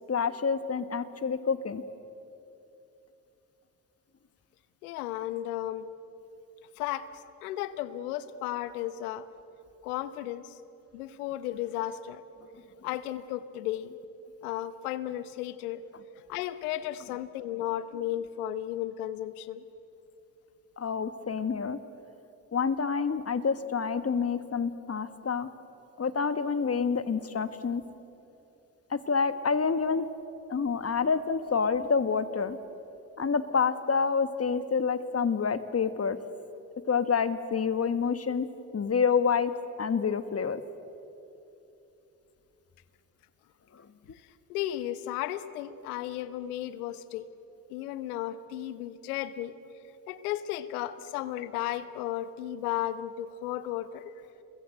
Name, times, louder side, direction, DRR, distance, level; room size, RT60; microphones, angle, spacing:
voice 1, 0.1-1.8 20.8-21.8 22.5-25.5 26.0-27.8 28.9-30.1 30.5-32.6 33.2-36.2 36.9-38.5 38.7-39.5 39.8-40.6, left 5 dB, 35° left, 12 dB, 1.5 m, -28 dB
voice 2, 4.8-5.9 6.8-7.1 7.4-9.3 9.8-10.6 10.9-12.2 12.8-13.9 14.4-15.8 16.3-19.6 44.5-47.3 47.7-49.5 50.1-54.1, left 13 dB, 85° left, 15 dB, 0.9 m, -34 dB
28.5 x 21.5 x 7.9 m, 2.9 s
hypercardioid pair, 45°, 43 cm